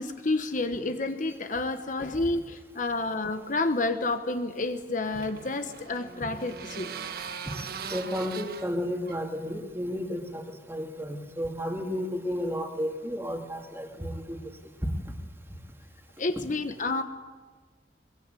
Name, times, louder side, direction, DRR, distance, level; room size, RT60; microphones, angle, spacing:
voice 1, 0.0-6.9 16.2-17.0, left 2 dB, 45° left, 8 dB, 1.2 m, -29 dB
sound 1, 4.5-10.0, right 6 dB, 55° right, 1.4 m, -41 dB
voice 2, 7.9-14.4 14.8-14.9, equal, 15° right, 3 dB, 2.5 m, -32 dB
22.0 x 22.0 x 9.2 m, 1.4 s
head